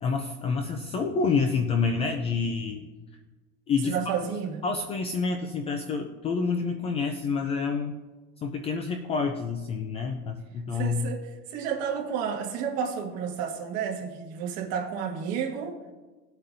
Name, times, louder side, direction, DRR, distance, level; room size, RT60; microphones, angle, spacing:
voice 1, 0.0-2.8 3.7-3.9 4.6-7.9 8.4-11.1, left 5 dB, 20° left, 5 dB, 0.4 m, -28 dB
voice 2, 3.8-4.6 10.7-15.8, right 7 dB, 50° right, 1 dB, 1.6 m, -31 dB
19.0 x 8.4 x 2.6 m, 1.3 s
cardioid pair, 175°, 32 cm